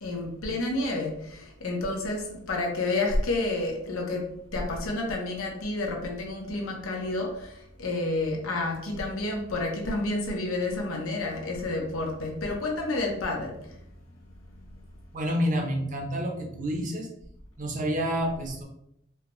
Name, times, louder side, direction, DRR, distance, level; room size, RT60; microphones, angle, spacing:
voice 1, 0.0-13.8, left 2 dB, 80° left, 0 dB, 0.9 m, -30 dB
voice 2, 15.1-17.1 17.6-18.6, equal, 40° right, 1 dB, 0.7 m, -28 dB
4.5 x 2.2 x 3.0 m, 0.76 s
head